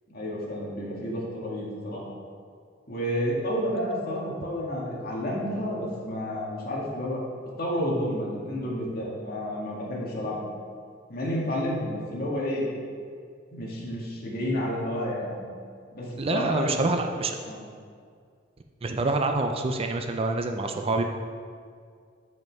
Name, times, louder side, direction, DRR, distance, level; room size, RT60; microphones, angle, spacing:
voice 1, 0.1-2.0 2.9-7.2 7.6-10.5 11.1-12.7 13.5-15.4 15.9-16.8 17.5-17.6, equal, 55° left, -4 dB, 1.7 m, -30 dB
voice 2, 16.2-17.4 18.8-21.0, right 3 dB, 30° right, 5 dB, 0.4 m, -26 dB
7.4 x 5.2 x 4.6 m, 2.1 s
head